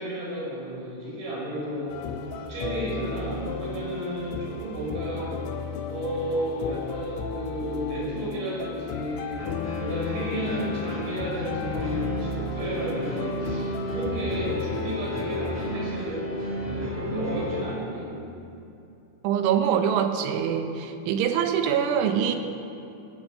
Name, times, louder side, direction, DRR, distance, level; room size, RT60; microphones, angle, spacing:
voice 1, 0.0-1.9 2.4-5.3 5.9-18.1, right 1 dB, 45° right, -5 dB, 6.5 m, -32 dB
sound 1, 1.9-15.7, left 5 dB, 80° left, 3.1 m, -35 dB
sound 2, 9.4-17.6, left 1 dB, 5° left, 1.7 m, -32 dB
voice 2, 19.2-22.4, right 8 dB, 85° right, 6 dB, 3.5 m, -24 dB
20.0 x 8.9 x 7.8 m, 2.7 s
omnidirectional pair, 5.3 m